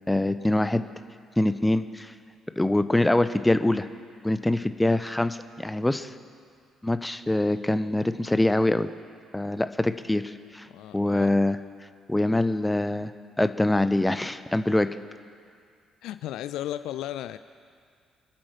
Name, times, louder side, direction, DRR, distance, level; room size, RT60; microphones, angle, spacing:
voice 1, 0.1-0.8 1.4-2.1 2.6-3.9 4.2-6.1 6.8-8.9 9.3-10.7 10.9-11.6 12.1-13.1 13.4-14.9, left 1 dB, 10° left, 11 dB, 0.8 m, -24 dB
voice 2, 10.7-11.3 16.0-17.4, left 12 dB, 60° left, 12 dB, 0.4 m, -35 dB
26.5 x 8.8 x 5.8 m, 2.2 s
figure-of-eight pair, 45°, 0 cm